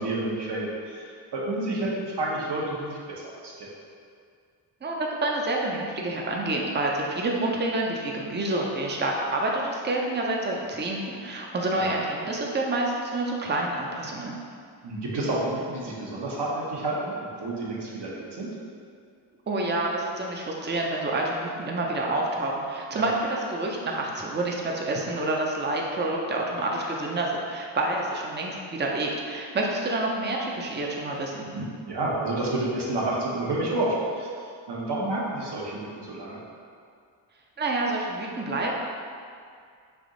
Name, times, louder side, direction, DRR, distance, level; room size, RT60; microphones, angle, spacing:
voice 1, 0.0-3.7 11.7-11.9 14.8-18.5 22.9-23.1 31.5-34.3 34.7-36.4, right 2 dB, 60° right, -4 dB, 1.0 m, -30 dB
voice 2, 4.8-14.3 19.5-31.5 37.6-38.8, right 2 dB, 25° right, -1 dB, 0.6 m, -28 dB
3.5 x 2.6 x 3.8 m, 2.2 s
cardioid pair, 60°, 45 cm